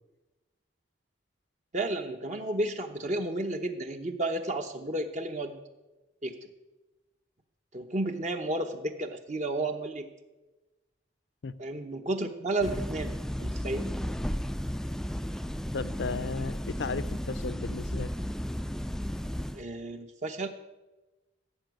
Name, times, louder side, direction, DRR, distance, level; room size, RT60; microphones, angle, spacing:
voice 1, 1.7-5.6 6.2-6.4 7.7-10.1 11.6-13.9 19.5-20.5, right 2 dB, 40° right, 5 dB, 0.8 m, -32 dB
sound 1, 12.6-19.6, equal, 5° left, 0.3 m, -34 dB
voice 2, 15.7-18.1, left 4 dB, 70° left, 16 dB, 0.6 m, -35 dB
15.5 x 6.9 x 9.2 m, 1.1 s
head